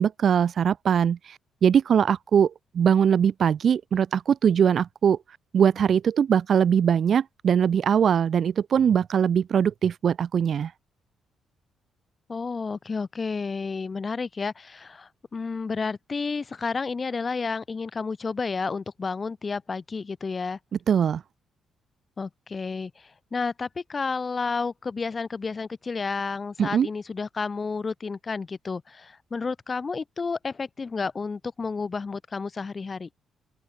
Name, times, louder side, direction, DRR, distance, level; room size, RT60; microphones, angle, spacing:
voice 1, 0.0-5.2 5.5-10.7 20.9-21.2 26.6-26.9, right 8 dB, 50° right, 1.0 m, -21 dB
voice 2, 12.3-20.6 22.2-33.1, left 4 dB, 30° left, 4.5 m, -31 dB
open air
cardioid pair, 135°, 0 cm